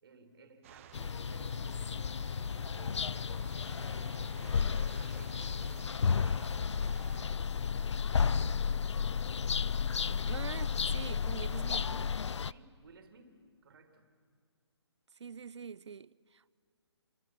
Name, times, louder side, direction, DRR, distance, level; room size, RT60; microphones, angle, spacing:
voice 1, 0.0-8.8 12.5-14.1, right 3 dB, 55° right, 2.7 m, -57 dB
sound 1, 0.6-7.2, right 9 dB, 30° right, 1.0 m, -55 dB
sound 2, 0.9-12.5, left 6 dB, 80° left, 0.5 m, -33 dB
voice 2, 10.3-12.1 15.1-16.5, right 6 dB, 75° right, 0.6 m, -44 dB
27.5 x 23.5 x 6.0 m
hypercardioid pair, 155°, 15 cm